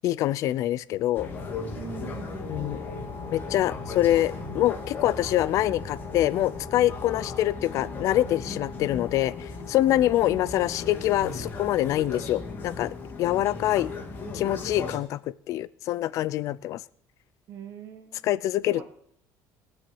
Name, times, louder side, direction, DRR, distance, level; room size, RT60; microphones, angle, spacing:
voice 1, 0.0-1.3 2.5-2.8 3.3-13.9 14.3-16.8 18.2-18.8, left 14 dB, 50° left, 19 dB, 0.5 m, -25 dB
sound 1, 1.1-15.0, left 4 dB, 30° left, 2.6 m, -36 dB
voice 2, 1.7-2.9 10.2-10.8 17.5-18.3 18.7-18.8, right 7 dB, 40° right, 6 dB, 1.7 m, -42 dB
18.5 x 7.1 x 7.8 m, 0.66 s
cardioid pair, 170°, 7 cm